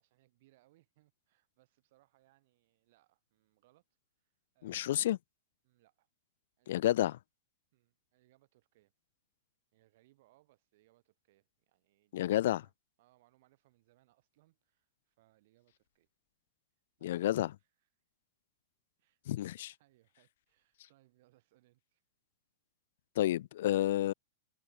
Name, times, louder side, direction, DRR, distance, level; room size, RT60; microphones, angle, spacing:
voice 1, 0.0-3.8 4.2-5.0 5.6-6.1 6.6-7.2 7.7-8.9 9.7-12.7 13.0-16.1 17.0-17.3 17.6-17.9 19.0-19.5 19.8-22.0, right 18 dB, 50° right, 4.3 m, -70 dB
voice 2, 4.6-5.2 6.7-7.1 12.1-12.6 17.0-17.5 19.3-19.7 23.2-24.1, left 13 dB, 60° left, 0.3 m, -30 dB
supercardioid pair, 160°, 0 cm